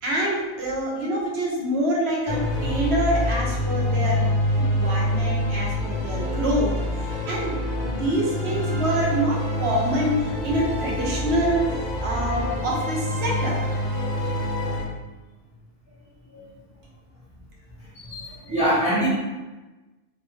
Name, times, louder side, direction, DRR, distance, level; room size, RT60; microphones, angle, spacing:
voice 1, 0.0-4.2 4.5-7.5 8.0-11.7 12.0-13.6, right 1 dB, 65° right, -3 dB, 0.9 m, -26 dB
sound 1, 2.3-14.8, equal, 50° left, 0.6 m, -26 dB
voice 2, 17.9-19.1, equal, 5° right, -8 dB, 0.7 m, -24 dB
2.4 x 2.2 x 3.0 m, 1.1 s
omnidirectional pair, 1.2 m